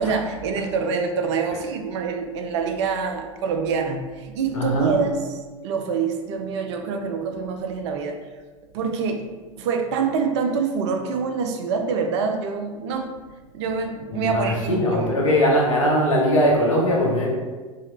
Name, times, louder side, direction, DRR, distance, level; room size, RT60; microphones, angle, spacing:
voice 1, 0.0-8.2 8.7-9.3 9.6-13.1 13.5-15.2, right 5 dB, 60° right, 5 dB, 0.4 m, -26 dB
voice 2, 4.5-4.9 14.3-17.3, equal, 75° left, -2 dB, 0.8 m, -20 dB
2.8 x 2.8 x 3.2 m, 1.3 s
figure-of-eight pair, 80°, 17 cm